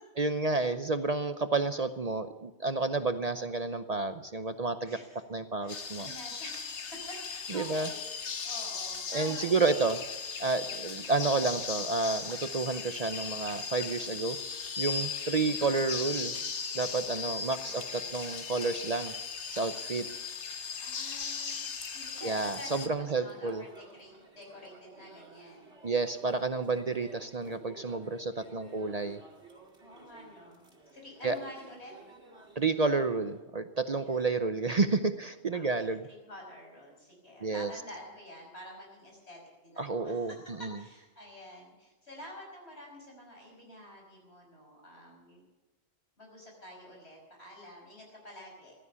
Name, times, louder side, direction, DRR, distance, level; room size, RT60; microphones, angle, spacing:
voice 1, 0.2-5.0 5.3-6.1 7.5-7.9 9.1-10.0 10.4-14.4 14.8-16.3 16.7-17.8 18.1-19.1 19.5-20.1 22.2-23.6 25.8-29.2 31.2-31.4 32.6-36.1 37.4-37.7 39.8-40.8, right 3 dB, 40° right, 10 dB, 0.7 m, -30 dB
voice 2, 4.8-5.2 5.6-9.9 15.3-15.5 17.6-18.3 20.8-25.7 28.5-29.0 29.8-31.9 34.0-34.2 35.5-45.4 46.2-48.7, left 1 dB, 70° left, 0 dB, 6.0 m, -49 dB
sound 1, 5.7-22.9, left 5 dB, 85° left, 1.5 m, -38 dB
sound 2, 22.4-33.4, right 3 dB, 80° right, 2.7 m, -54 dB
16.0 x 12.5 x 6.9 m, 1.2 s
omnidirectional pair, 1.1 m